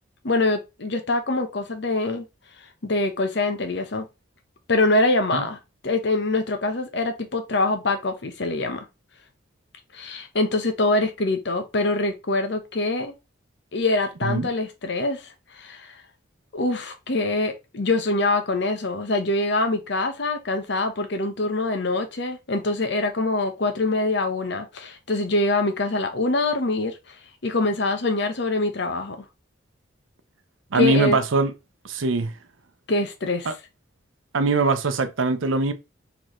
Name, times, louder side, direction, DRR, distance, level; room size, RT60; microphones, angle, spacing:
voice 1, 0.2-2.2 2.8-4.0 4.7-5.6 5.8-8.8 9.9-13.1 13.7-15.9 16.5-27.1 27.4-29.2 30.7-31.2 32.9-33.5, left 2 dB, 60° left, 0.9 m, -24 dB
voice 2, 30.7-31.5 31.8-32.3 33.4-33.5 34.3-35.7, right 3 dB, 80° right, 0.7 m, -22 dB
4.4 x 3.5 x 3.0 m
head